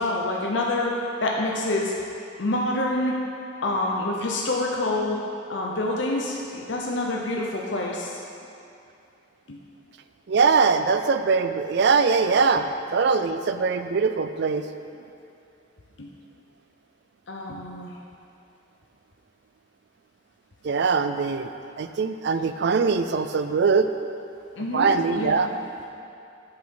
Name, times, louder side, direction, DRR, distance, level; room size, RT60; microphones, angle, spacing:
voice 1, 0.0-1.9 2.4-3.2 3.6-5.2 5.5-8.2 9.5-9.6 16.0-16.1 17.3-17.9 24.6-25.5, left 2 dB, 65° left, -2 dB, 0.8 m, -27 dB
voice 2, 10.3-14.6 20.6-21.5 21.8-23.9 24.7-25.5, right 5 dB, 55° right, 9 dB, 0.4 m, -22 dB
8.5 x 6.3 x 4.7 m, 2.6 s
head